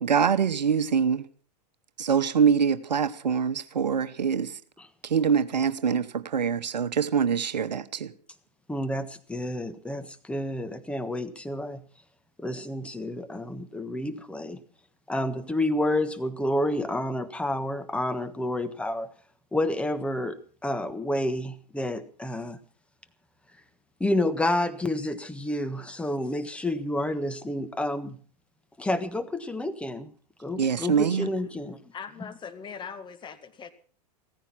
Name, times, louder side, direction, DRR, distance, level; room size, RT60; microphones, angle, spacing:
voice 1, 0.0-1.3 2.0-4.6 5.0-8.1 30.6-31.3, right 7 dB, 85° right, 0.9 m, -24 dB
voice 2, 8.7-11.8 12.4-14.6 15.1-19.1 19.5-22.6 24.0-28.2 28.8-30.1 30.4-31.8, left 1 dB, 5° left, 1.4 m, -29 dB
voice 3, 31.9-33.7, left 6 dB, 20° left, 1.9 m, -40 dB
16.0 x 14.5 x 5.8 m
hypercardioid pair, 105°, 21 cm